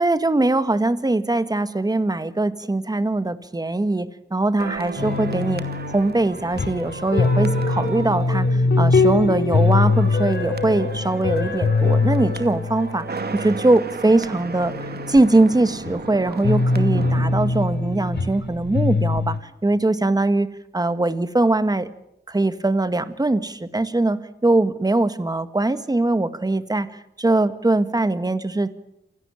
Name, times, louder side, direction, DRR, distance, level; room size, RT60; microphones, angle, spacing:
voice 1, 0.0-13.1 13.3-14.7 15.1-19.4 19.6-20.5 20.7-21.9 22.3-28.7, right 2 dB, 20° right, 11 dB, 1.8 m, -21 dB
sound 1, 4.6-18.7 19.0-19.2, right 4 dB, 60° right, 2.3 m, -35 dB
sound 2, 5.0-13.8 14.3-19.4, left 3 dB, 65° left, 4.4 m, -22 dB
28.0 x 17.5 x 9.0 m, 0.80 s
wide cardioid pair, 90°, 19 cm